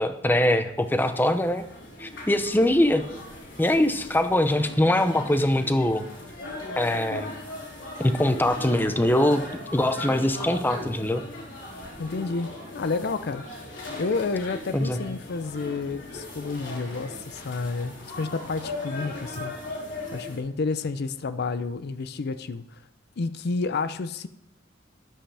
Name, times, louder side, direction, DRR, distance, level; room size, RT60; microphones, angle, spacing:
voice 1, 0.0-1.6 2.0-3.0 3.6-6.0 6.8-7.3 8.0-9.4 9.7-11.2 14.7-15.0, left 1 dB, 10° left, 9 dB, 0.6 m, -22 dB
sound 1, 0.8-20.4, left 1 dB, 75° left, 3.7 m, -39 dB
voice 2, 12.0-19.5 20.1-22.6 23.2-24.3, left 4 dB, 60° left, 13 dB, 0.5 m, -30 dB
13.0 x 10.0 x 3.4 m, 0.77 s
head